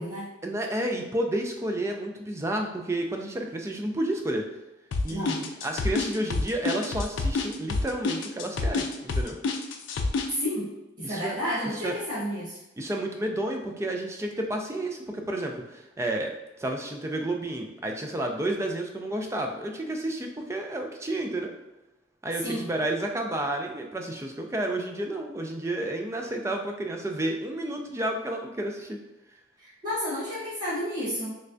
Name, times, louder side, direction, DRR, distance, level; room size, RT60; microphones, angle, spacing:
voice 1, 0.4-4.4 5.0-9.4 11.0-11.3 11.7-12.0 12.8-16.3 16.6-21.5 22.2-29.0, right 1 dB, 15° right, 3 dB, 0.3 m, -31 dB
sound 1, 4.9-10.3, left 3 dB, 75° left, 0.4 m, -27 dB
voice 2, 5.1-5.4 10.3-12.6 22.4-22.7 29.6-31.3, equal, 45° right, -10 dB, 1.3 m, -31 dB
3.3 x 3.2 x 2.5 m, 1.0 s
head